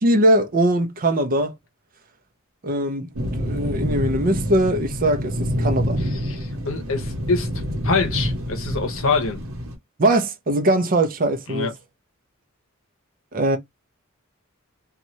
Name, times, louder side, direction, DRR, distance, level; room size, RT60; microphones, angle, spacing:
voice 1, 0.0-1.5 2.6-3.1 3.4-6.0 10.0-11.7 13.3-13.6, right 1 dB, 40° right, 0.6 m, -21 dB
sound 1, 3.1-9.8, equal, 75° right, 0.9 m, -27 dB
voice 2, 6.2-7.5 7.8-9.4 11.5-11.7, left 4 dB, 70° left, 0.8 m, -24 dB
3.0 x 2.4 x 2.6 m
head